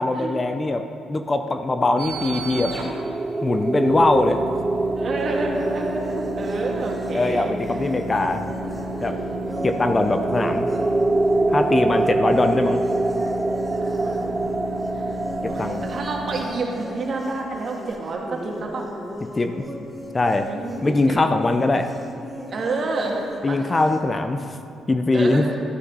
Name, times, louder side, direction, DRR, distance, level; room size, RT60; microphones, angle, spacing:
voice 1, 0.0-2.8 3.4-4.4 7.1-8.5 9.0-9.2 9.6-10.7 11.5-12.8 15.4-15.8 19.4-19.6 20.1-20.5 20.8-21.9 23.4-24.4 24.9-25.4, left 2 dB, 25° left, 8 dB, 0.5 m, -21 dB
sound 1, 1.6-18.4, right 2 dB, 25° right, 0.4 m, -26 dB
sound 2, 2.0-16.4, right 1 dB, 75° right, 2.2 m, -34 dB
voice 2, 5.0-7.5 9.1-9.5 13.8-14.5 14.9-15.2 15.5-18.9 20.4-21.2 22.5-23.7 25.1-25.6, right 3 dB, 50° right, 0 dB, 1.8 m, -29 dB
sound 3, 5.2-24.0, equal, ahead, 1.3 m, -38 dB
12.5 x 6.5 x 5.4 m, 2.8 s
cardioid pair, 90°, 0 cm